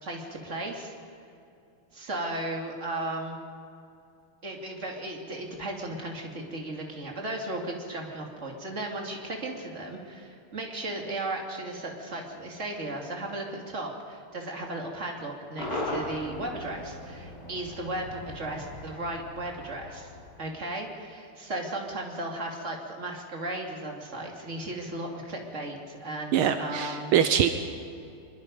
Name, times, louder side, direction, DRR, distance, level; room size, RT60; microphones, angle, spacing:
voice 1, 0.0-0.9 1.9-3.4 4.4-20.1 20.4-27.1, right 2 dB, 35° right, 1 dB, 2.8 m, -35 dB
Cheering / Crowd / Fireworks, 15.6-20.9, left 1 dB, 50° left, 6.3 m, -38 dB
voice 2, 26.3-27.5, right 9 dB, 80° right, 8 dB, 1.7 m, -23 dB
24.0 x 22.5 x 5.3 m, 2.7 s
omnidirectional pair, 2.4 m